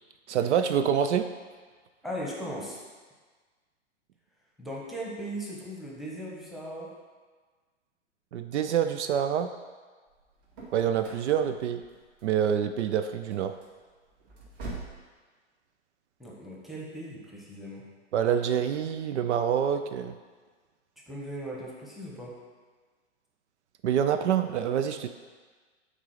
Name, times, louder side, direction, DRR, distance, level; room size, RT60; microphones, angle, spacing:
voice 1, 0.3-1.3 8.3-9.5 10.7-11.8 12.2-13.6 18.1-20.1 23.8-25.1, right 8 dB, 70° right, 9 dB, 0.5 m, -26 dB
voice 2, 2.0-2.8 4.6-7.0 16.2-17.9 21.1-22.4, equal, ahead, -4 dB, 1.0 m, -38 dB
sound 1, 10.1-15.1, right 3 dB, 50° right, 2.2 m, -45 dB
6.0 x 4.0 x 5.5 m, 1.4 s
hypercardioid pair, 125°, 36 cm